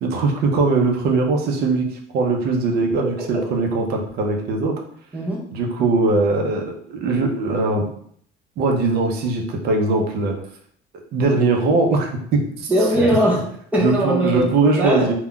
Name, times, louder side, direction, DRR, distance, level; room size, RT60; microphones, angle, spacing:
voice 1, 0.0-1.9 2.1-4.8 5.5-7.9 8.6-10.3 11.1-13.1 13.8-15.1, right 3 dB, 55° right, 2 dB, 0.6 m, -20 dB
voice 2, 5.1-5.5 12.7-14.5 14.8-15.1, equal, 5° right, -3 dB, 0.5 m, -20 dB
2.3 x 2.2 x 3.6 m, 0.64 s
cardioid pair, 150°, 20 cm